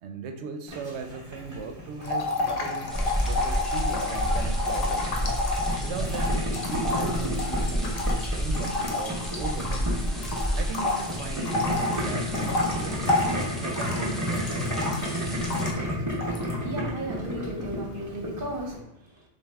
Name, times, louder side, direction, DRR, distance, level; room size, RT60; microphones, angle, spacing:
voice 1, 0.0-2.9 3.3-5.1 5.8-8.1 8.4-10.3 10.6-15.1, right 5 dB, 85° right, 5 dB, 0.9 m, -38 dB
Boiling, 0.7-18.8, left 1 dB, 20° right, 0.8 m, -32 dB
sound 1, 2.0-9.9 10.2-15.9 16.2-16.6, left 2 dB, 65° left, 0.9 m, -30 dB
sound 2, 2.9-15.7, equal, ahead, 0.3 m, -31 dB
voice 2, 16.6-19.2, right 1 dB, 55° right, 0 dB, 1.0 m, -35 dB
5.1 x 2.4 x 3.4 m, 0.83 s
omnidirectional pair, 1.1 m